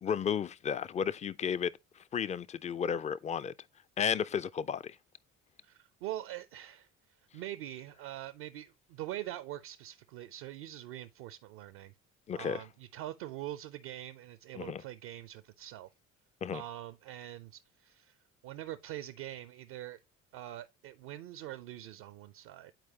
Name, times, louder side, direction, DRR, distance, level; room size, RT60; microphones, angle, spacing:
voice 1, 0.0-1.7 2.1-3.5 4.0-5.0 12.3-12.6 14.6-14.8 16.4-16.6, left 7 dB, 20° left, 0.3 m, -33 dB
voice 2, 5.6-6.9 7.3-11.9 12.4-15.9 16.5-20.0 20.3-22.7, right 13 dB, 65° right, 0.6 m, -44 dB
9.1 x 4.5 x 2.8 m
figure-of-eight pair, 50°, 39 cm